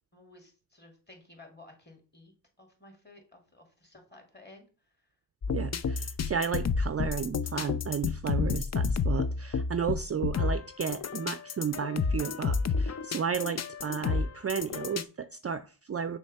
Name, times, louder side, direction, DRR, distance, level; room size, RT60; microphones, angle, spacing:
voice 1, 0.1-2.3 2.6-4.7, left 2 dB, 25° left, 2.7 m, -54 dB
sound 1, 5.4-15.0, left 5 dB, 40° left, 0.5 m, -30 dB
voice 2, 5.5-16.2, right 7 dB, 35° right, 0.4 m, -33 dB
6.3 x 3.2 x 5.5 m
cardioid pair, 65°, 42 cm